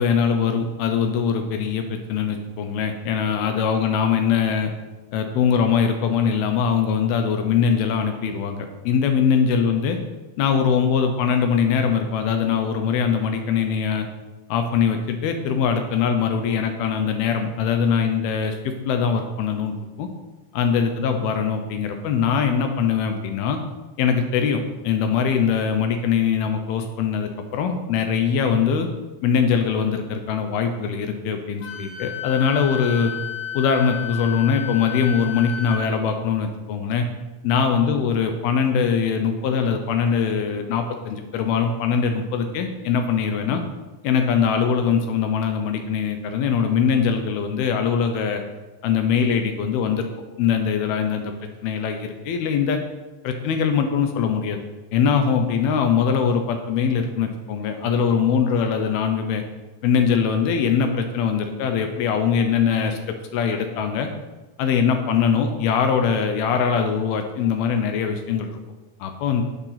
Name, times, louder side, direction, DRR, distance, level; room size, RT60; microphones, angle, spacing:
voice 1, 0.0-4.7 5.1-10.0 10.4-14.1 14.5-20.1 20.5-23.6 24.0-28.9 29.2-33.1 33.5-37.1 37.4-43.6 44.0-48.4 48.8-50.1 50.4-51.3 51.6-52.8 53.2-54.6 54.9-59.4 59.8-63.0 63.3-64.1 64.6-68.5 69.0-69.4, left 6 dB, 75° left, 6 dB, 2.5 m, -22 dB
Wind instrument woodwind instrument, 31.6-35.8, left 9 dB, 60° left, 3.3 m, -32 dB
11.0 x 8.1 x 5.8 m, 1.1 s
omnidirectional pair, 5.1 m